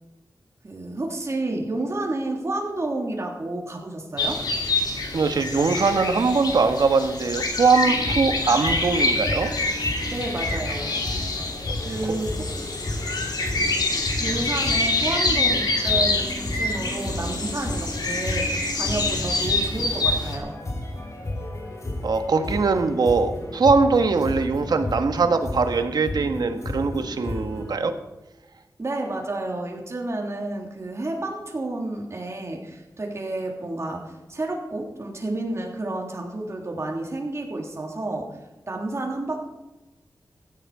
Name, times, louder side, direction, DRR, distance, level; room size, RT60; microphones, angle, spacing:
voice 1, 0.6-4.4 10.1-11.0 11.8-12.5 14.2-20.5 28.8-38.4 38.7-39.5, right 2 dB, 45° right, 0 dB, 3.2 m, -30 dB
sound 1, 4.2-20.4, left 2 dB, 90° left, 2.7 m, -26 dB
voice 2, 5.1-9.5 22.0-27.9, right 4 dB, 90° right, 7 dB, 1.4 m, -21 dB
sound 2, 7.8-27.7, left 1 dB, 50° left, 4.1 m, -33 dB
16.0 x 11.0 x 4.9 m, 1.1 s
wide cardioid pair, 100°, 7 cm